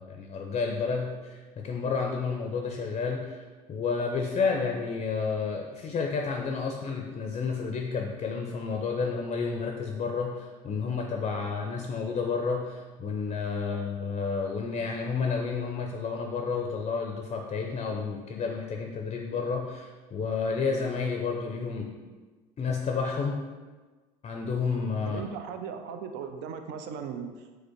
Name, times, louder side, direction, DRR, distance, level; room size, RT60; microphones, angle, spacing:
voice 1, 0.0-3.4 3.7-21.9 22.6-23.5 24.2-25.2, left 5 dB, 35° left, 2 dB, 0.5 m, -30 dB
voice 2, 25.1-27.6, right 6 dB, 60° right, 7 dB, 0.5 m, -38 dB
5.0 x 2.1 x 4.4 m, 1.3 s
supercardioid pair, 80°, 20 cm